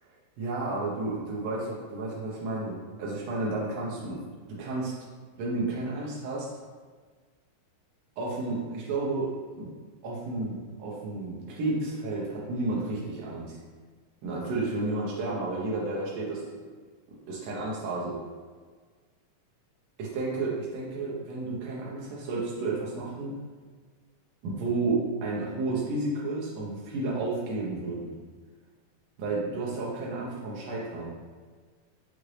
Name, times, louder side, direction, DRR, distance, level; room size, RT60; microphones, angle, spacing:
voice 1, 0.4-4.2 4.5-4.9 5.4-6.5 8.2-9.3 9.6-9.7 10.0-13.6 14.2-16.4 17.3-18.2 20.0-23.3 24.4-28.1 29.2-31.1, right 2 dB, 80° right, -5 dB, 1.5 m, -31 dB
5.9 x 2.5 x 3.1 m, 1.5 s
omnidirectional pair, 3.8 m